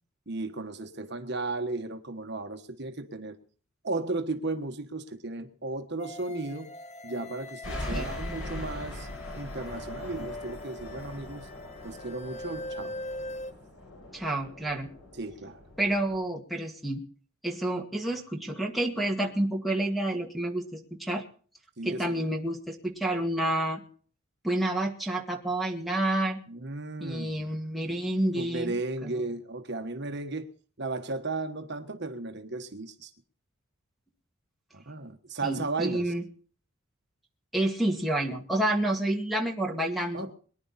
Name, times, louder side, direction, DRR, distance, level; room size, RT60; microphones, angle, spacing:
voice 1, 0.3-3.4 3.8-6.7 7.0-9.1 9.4-11.5 11.8-12.9 15.2-15.6 21.8-22.2 26.5-27.3 28.3-30.5 30.8-33.1 34.7-36.1 40.1-40.3, right 2 dB, 55° right, 6 dB, 1.4 m, -35 dB
sound 1, 6.0-13.5, left 2 dB, 30° left, 0.7 m, -42 dB
sound 2, 7.6-16.2, left 1 dB, 70° left, 5.8 m, -41 dB
voice 2, 14.1-14.9 15.8-17.0 17.4-21.2 21.8-23.8 24.4-26.4 27.0-28.7 29.0-29.2 35.4-36.2 37.5-40.2, right 1 dB, ahead, -1 dB, 2.1 m, -29 dB
23.5 x 10.5 x 4.2 m, 0.43 s
head